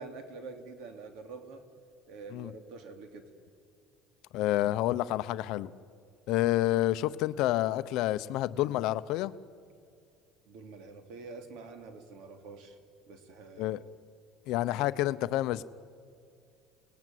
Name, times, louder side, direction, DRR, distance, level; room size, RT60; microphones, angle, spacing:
voice 1, 0.0-1.6 2.1-3.3 10.5-12.8 13.1-13.8, right 4 dB, 60° right, 7 dB, 2.8 m, -46 dB
voice 2, 4.3-5.7 6.3-9.3 13.6-13.8 14.5-15.6, left 15 dB, 55° left, 13 dB, 0.8 m, -29 dB
29.5 x 19.5 x 9.3 m, 2.4 s
cardioid pair, 175°, 0 cm